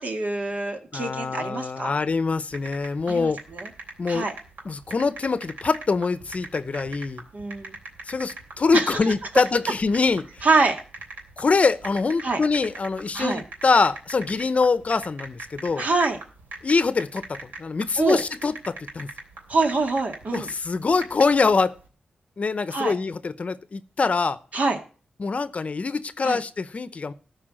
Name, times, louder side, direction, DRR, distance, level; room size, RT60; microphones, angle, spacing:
voice 1, 0.0-1.9 3.1-3.7 4.1-4.3 7.3-7.8 8.7-8.9 10.4-10.8 12.2-12.4 13.1-13.4 15.8-16.2 18.0-18.2 19.5-20.5 22.7-22.9 24.5-24.8 26.2-26.4, right 3 dB, 55° right, 4 dB, 2.1 m, -25 dB
voice 2, 0.9-3.4 4.0-4.3 4.6-7.2 8.1-10.5 11.4-15.9 16.6-19.1 20.3-21.7 22.4-24.4 25.2-27.1, left 4 dB, 50° left, 15 dB, 0.7 m, -24 dB
sound 1, 2.5-21.9, right 2 dB, 90° right, 3.2 m, -41 dB
13.5 x 4.7 x 7.6 m, 0.37 s
wide cardioid pair, 80°, 3 cm